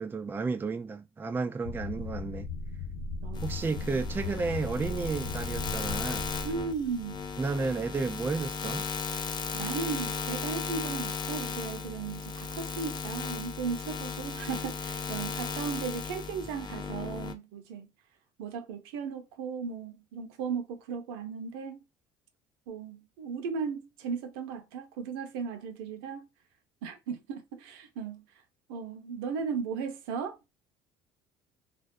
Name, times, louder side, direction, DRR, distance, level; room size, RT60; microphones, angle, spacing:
voice 1, 0.0-2.5 3.4-6.2 7.4-8.8, right 4 dB, 15° right, 0.3 m, -32 dB
sound 1, 1.6-7.8, left 3 dB, 70° left, 1.1 m, -38 dB
voice 2, 3.2-3.9 6.4-7.3 9.5-17.9 18.4-21.8 22.7-26.3 26.8-28.2 28.7-30.4, right 6 dB, 80° right, 0.6 m, -36 dB
sound 2, 3.3-17.3, left 5 dB, 35° left, 0.5 m, -36 dB
2.3 x 2.2 x 2.4 m
hypercardioid pair, 70°, 13 cm